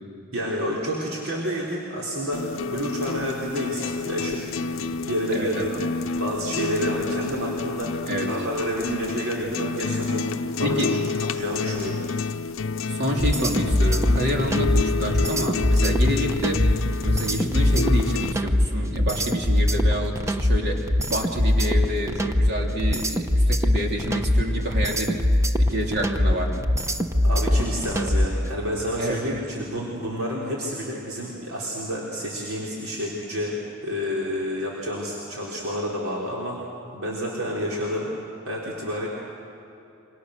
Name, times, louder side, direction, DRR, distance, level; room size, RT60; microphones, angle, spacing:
voice 1, 0.3-10.8 11.3-12.0 27.2-36.6 36.9-38.1 38.5-39.1, equal, 80° right, -4 dB, 3.9 m, -29 dB
sound 1, 2.3-18.3, left 4 dB, 65° left, 0.6 m, -29 dB
voice 2, 5.3-5.8 8.1-8.3 10.6-11.0 12.9-16.6 17.0-26.6 29.0-29.4, equal, 50° right, 0 dB, 3.2 m, -28 dB
sound 2, 13.2-28.4, left 1 dB, 15° right, 0.9 m, -22 dB
29.0 x 25.5 x 6.6 m, 2.8 s
head